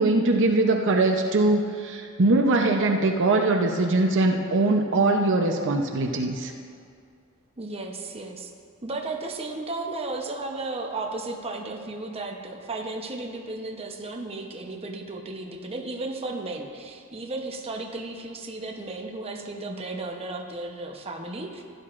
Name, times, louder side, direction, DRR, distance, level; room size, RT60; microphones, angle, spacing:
voice 1, 0.0-6.5, right 2 dB, 55° right, 3 dB, 0.7 m, -22 dB
voice 2, 7.6-8.5 8.8-21.6, right 2 dB, 25° right, 1 dB, 0.9 m, -34 dB
15.5 x 10.5 x 2.5 m, 2.3 s
head